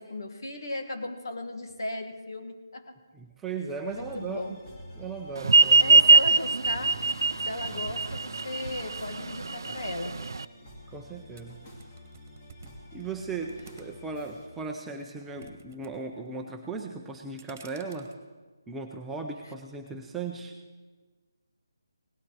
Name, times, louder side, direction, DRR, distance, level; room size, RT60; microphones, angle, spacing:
voice 1, 0.0-3.0 3.9-4.5 5.8-7.0 7.4-10.2, left 2 dB, 65° left, 5 dB, 1.8 m, -36 dB
voice 2, 3.1-4.6 5.0-6.0 10.9-11.6 12.9-18.1 18.7-20.5, right 4 dB, 5° right, 1 dB, 0.6 m, -37 dB
sound 1, 3.9-14.5, equal, 25° left, 2.4 m, -48 dB
sound 2, 5.4-10.5, right 4 dB, 70° right, 0.4 m, -21 dB
sound 3, 11.4-14.2 14.6-15.9 16.2-16.6 17.0-18.1, right 6 dB, 35° right, 1.4 m, -52 dB
18.0 x 11.5 x 4.8 m, 1.4 s
figure-of-eight pair, 165°, 2 cm